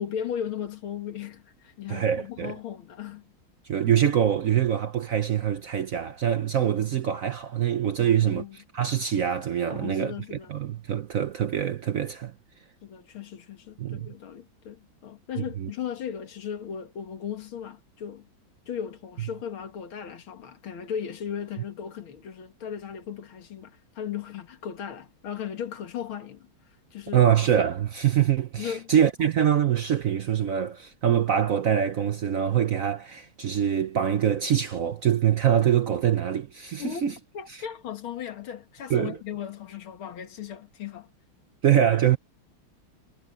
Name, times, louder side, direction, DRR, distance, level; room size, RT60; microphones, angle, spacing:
voice 1, 0.0-3.3 8.0-8.6 9.7-10.5 12.8-18.3 18.7-26.5 26.9-27.2 28.6-28.9 29.2-29.3 36.8-41.1, left 8 dB, 90° left, 2.5 m, -36 dB
voice 2, 1.9-2.5 3.7-8.4 8.7-12.3 13.8-14.1 15.6-15.7 27.1-37.1 37.5-37.6 38.9-39.2 41.6-42.2, right 9 dB, 60° right, 0.9 m, -24 dB
omnidirectional pair, 2.2 m